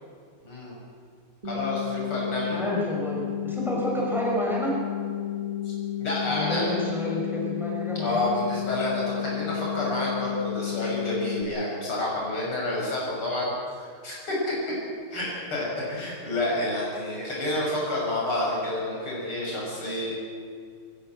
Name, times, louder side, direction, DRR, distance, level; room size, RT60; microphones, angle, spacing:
voice 1, 0.4-0.7 1.4-2.6 6.0-6.7 8.0-13.5 13.8-14.4 15.1-20.1, left 1 dB, 85° left, -4 dB, 7.8 m, -29 dB
sound 1, 1.4-11.4, left 11 dB, 15° right, 2.4 m, -32 dB
voice 2, 2.5-4.7 6.3-8.3 15.5-15.6, equal, ahead, -3 dB, 5.3 m, -29 dB
23.0 x 16.0 x 7.8 m, 2.1 s
omnidirectional pair, 2.3 m